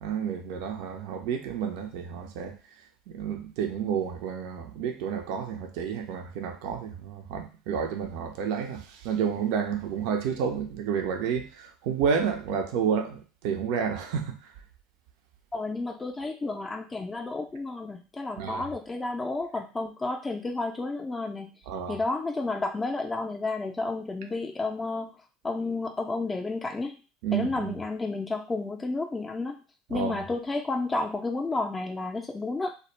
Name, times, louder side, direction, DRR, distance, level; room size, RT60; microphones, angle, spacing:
voice 1, 0.0-2.6 3.1-14.4 18.4-18.6 21.7-22.0 27.2-27.7 29.9-30.2, right 7 dB, 65° right, 4 dB, 0.4 m, -30 dB
voice 2, 15.5-21.5 21.9-25.1 25.4-27.0 27.3-29.6 29.9-32.7, left 3 dB, 20° left, 3 dB, 0.4 m, -31 dB
2.1 x 2.0 x 3.1 m, 0.33 s
hypercardioid pair, 75°, 0 cm